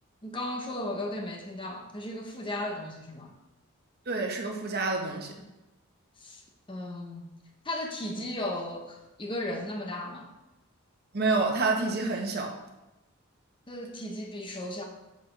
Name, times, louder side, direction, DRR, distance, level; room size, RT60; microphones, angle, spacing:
voice 1, 0.2-3.3 6.2-6.4 6.7-7.2 7.6-10.3 13.7-14.8, left 1 dB, 25° left, 2 dB, 0.9 m, -35 dB
voice 2, 4.1-5.3 11.1-12.5, right 3 dB, 50° right, 1 dB, 1.1 m, -28 dB
7.7 x 6.3 x 3.3 m, 0.98 s
head